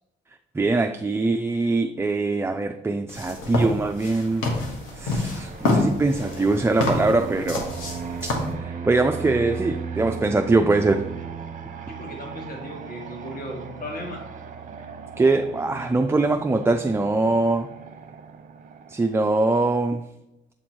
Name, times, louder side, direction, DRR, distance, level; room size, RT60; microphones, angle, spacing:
voice 1, 0.5-4.5 5.0-7.7 8.6-11.1 15.2-17.7 18.9-20.0, right 3 dB, 10° right, 5 dB, 0.3 m, -22 dB
sound 1, 3.1-8.5, left 2 dB, 90° left, 1.3 m, -27 dB
Fixed-wing aircraft airplane, 4.0-19.2, right 6 dB, 40° right, 0.8 m, -37 dB
voice 2, 11.9-14.2, left 1 dB, 45° left, 0 dB, 1.7 m, -36 dB
7.8 x 3.0 x 4.4 m, 0.90 s
cardioid pair, 90°, 20 cm